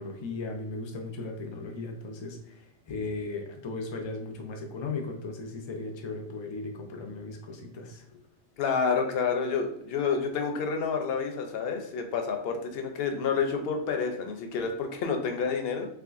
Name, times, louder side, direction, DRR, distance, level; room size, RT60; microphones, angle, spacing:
voice 1, 0.0-8.2, left 3 dB, 45° left, 2 dB, 0.3 m, -37 dB
voice 2, 8.6-15.9, left 5 dB, 65° left, 5 dB, 0.7 m, -29 dB
3.6 x 3.1 x 2.4 m, 0.77 s
omnidirectional pair, 1.2 m